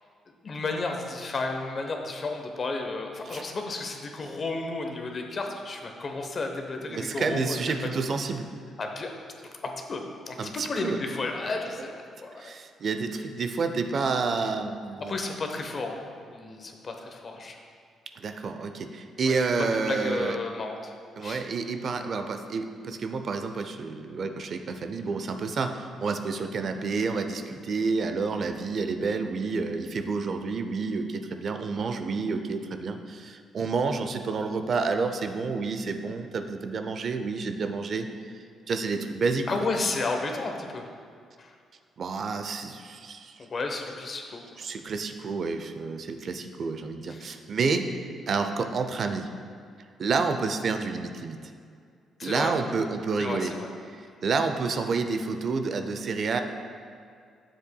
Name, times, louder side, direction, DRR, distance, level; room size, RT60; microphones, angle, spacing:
voice 1, 0.4-8.0 8.8-9.1 9.4-12.5 15.1-16.0 16.3-17.6 19.3-20.9 21.2-21.4 39.5-40.9 41.4-41.5 43.4-44.4 47.1-47.4 52.2-52.5 53.2-53.7, left 3 dB, 45° left, 3 dB, 0.9 m, -33 dB
voice 2, 6.9-8.5 10.4-11.0 12.4-15.2 18.2-20.4 21.2-38.1 38.7-39.5 42.0-43.4 44.6-47.9 48.3-49.3 50.0-51.4 52.2-53.5 53.9-56.4, right 4 dB, 55° right, 7 dB, 0.5 m, -29 dB
9.7 x 7.3 x 2.3 m, 2.2 s
cardioid pair, 90°, 0 cm